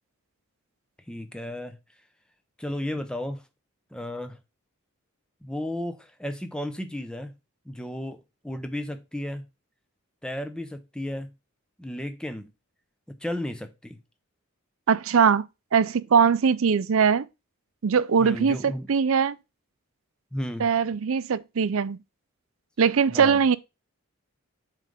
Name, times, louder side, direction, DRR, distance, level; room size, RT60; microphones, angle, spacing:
voice 1, 1.1-1.8 2.6-3.4 3.9-4.4 5.4-7.3 7.7-9.4 10.2-11.3 11.8-12.5 13.2-14.0 18.2-18.9 20.3-20.7 23.1-23.4, left 1 dB, 5° left, 0.6 m, -33 dB
voice 2, 14.9-15.4 15.7-17.3 17.8-19.4 20.6-22.0 22.8-23.6, right 6 dB, 70° right, 0.4 m, -21 dB
7.4 x 3.3 x 5.1 m
head